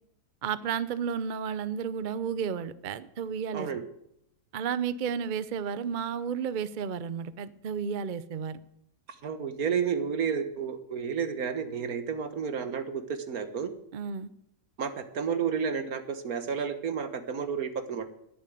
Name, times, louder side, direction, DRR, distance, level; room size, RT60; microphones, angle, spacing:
voice 1, 0.4-3.8 4.5-8.6 13.9-14.3, right 7 dB, 50° right, 15 dB, 0.6 m, -32 dB
voice 2, 9.2-13.7 14.8-18.1, right 6 dB, 75° right, 10 dB, 1.8 m, -31 dB
11.0 x 10.5 x 9.2 m, 0.76 s
omnidirectional pair, 1.5 m